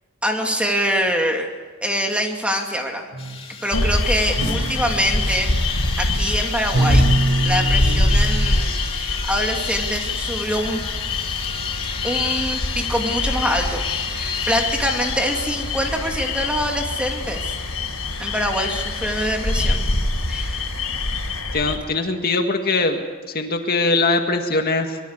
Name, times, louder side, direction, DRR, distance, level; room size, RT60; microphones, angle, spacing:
voice 1, 0.2-1.5 1.8-3.1 3.6-5.5 6.0-7.1 7.4-10.8 12.0-13.8 14.1-17.5 18.2-19.8 20.3-20.8, equal, 5° right, 2 dB, 2.5 m, -24 dB
sound 1, 3.1-4.0 4.3-6.2 6.5-8.6, right 1 dB, 80° right, 4.2 m, -24 dB
sound 2, 3.2-21.4, left 6 dB, 25° left, 2.8 m, -33 dB
sound 3, 3.7-21.8, left 2 dB, 85° left, 4.6 m, -24 dB
voice 2, 21.5-25.0, left 3 dB, 45° left, 4 dB, 2.0 m, -22 dB
23.5 x 23.0 x 8.2 m, 1.5 s
head